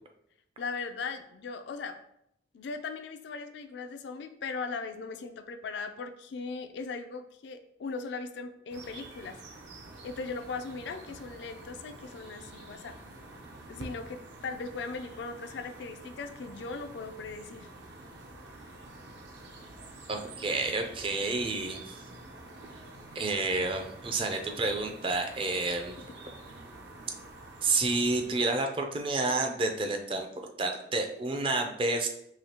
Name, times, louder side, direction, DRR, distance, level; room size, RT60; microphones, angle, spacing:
voice 1, 0.6-2.0 2.5-9.4 10.0-13.0 13.7-17.7, left 4 dB, 65° left, 8 dB, 0.3 m, -38 dB
sound 1, 8.7-28.3, right 2 dB, 65° right, 0.6 m, -48 dB
voice 2, 20.1-22.0 23.1-26.0 27.6-32.1, right 3 dB, 25° right, 4 dB, 0.4 m, -30 dB
4.9 x 2.7 x 2.8 m, 0.77 s
head